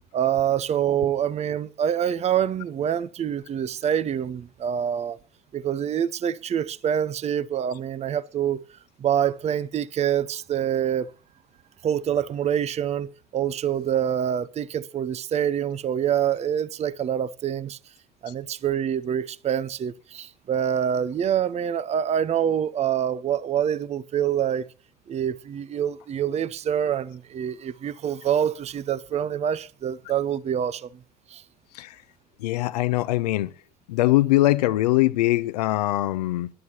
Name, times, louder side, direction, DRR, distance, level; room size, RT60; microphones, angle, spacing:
voice 1, 0.1-5.2 5.5-8.6 9.0-11.1 11.8-17.8 18.2-24.7 25.1-30.9 31.3-31.4, right 9 dB, 30° right, 0.8 m, -26 dB
voice 2, 32.4-33.5 33.9-36.5, left 17 dB, 75° left, 0.7 m, -22 dB
21.5 x 11.0 x 2.9 m
hypercardioid pair, 75°, 21 cm